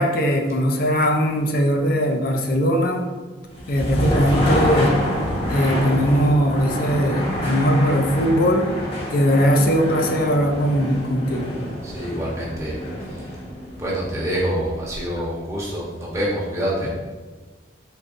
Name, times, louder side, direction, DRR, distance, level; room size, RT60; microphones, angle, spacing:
voice 1, 0.0-3.1 3.7-5.0 5.5-8.7 9.1-11.5, equal, 50° left, 2 dB, 0.5 m, -20 dB
sound 1, 3.5-15.3, equal, 30° left, 0.9 m, -27 dB
voice 2, 11.8-12.8 13.1-13.2 13.8-16.9, equal, 15° right, -6 dB, 1.0 m, -26 dB
3.9 x 3.7 x 2.6 m, 1.3 s
head